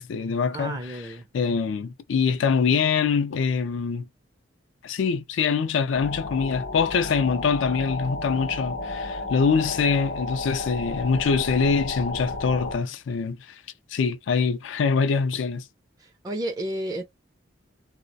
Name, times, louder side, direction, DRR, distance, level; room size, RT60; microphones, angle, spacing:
voice 1, 0.0-0.8 1.3-4.1 4.8-13.6 13.9-15.7, left 5 dB, 70° left, 0.4 m, -24 dB
voice 2, 0.5-1.3 16.0-17.0, right 1 dB, 20° right, 0.4 m, -32 dB
sound 1, 5.9-12.8, left 2 dB, 50° left, 0.7 m, -32 dB
2.3 x 2.1 x 2.6 m
head